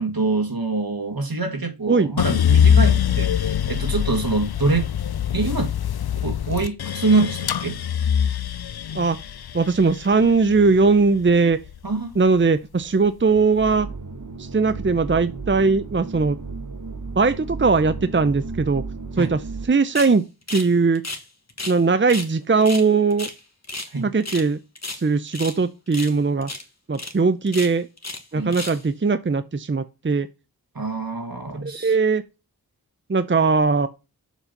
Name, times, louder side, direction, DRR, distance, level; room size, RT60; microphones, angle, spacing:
voice 1, 0.0-4.9 5.3-5.7 6.2-7.8 11.8-12.1 19.2-19.3 23.9-24.1 28.3-28.6 30.8-31.9, right 3 dB, 70° right, 1.9 m, -25 dB
sound 1, 2.2-12.4 12.8-13.6, left 8 dB, 85° left, 0.5 m, -23 dB
voice 2, 9.5-11.6 12.2-13.9 14.4-16.4 17.2-18.8 19.2-20.2 20.5-21.0 21.7-23.3 24.0-24.6 24.9-26.5 26.9-27.9 28.3-30.3 31.6-32.2 33.1-33.9, right 4 dB, 30° right, 0.6 m, -19 dB
sound 2, 13.6-19.7, right 4 dB, 55° right, 1.4 m, -34 dB
sound 3, 19.9-20.1 20.5-20.7 20.9-21.8 22.1-22.3 22.6-23.9 24.2-24.5 24.7-25.6 25.9-26.2 26.4-26.6 26.9-27.1 27.5-28.2 28.5-28.8, left 2 dB, 45° left, 1.5 m, -33 dB
7.3 x 4.2 x 5.2 m
wide cardioid pair, 50°, 37 cm